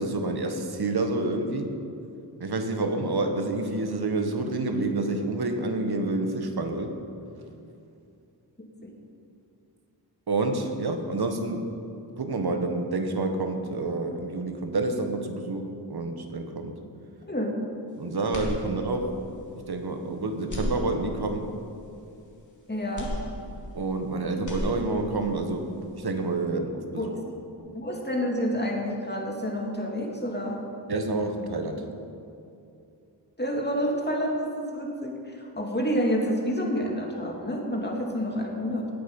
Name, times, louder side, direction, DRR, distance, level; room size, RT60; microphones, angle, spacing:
voice 1, 0.0-1.8 2.4-6.9 10.3-11.7 12.2-16.7 18.0-19.2 19.7-21.5 23.7-25.7 25.9-27.1 30.9-31.8, right 2 dB, 60° right, 5 dB, 1.5 m, -28 dB
sound 1, 18.3-19.2 19.6-19.7 20.4-21.4 22.9-24.0 24.3-25.3, left 1 dB, 40° left, 2.7 m, -34 dB
voice 2, 22.7-23.2 27.0-27.2 27.6-30.7 33.4-38.9, equal, 25° left, 0 dB, 2.4 m, -29 dB
18.0 x 8.7 x 5.4 m, 2.6 s
wide cardioid pair, 85°, 43 cm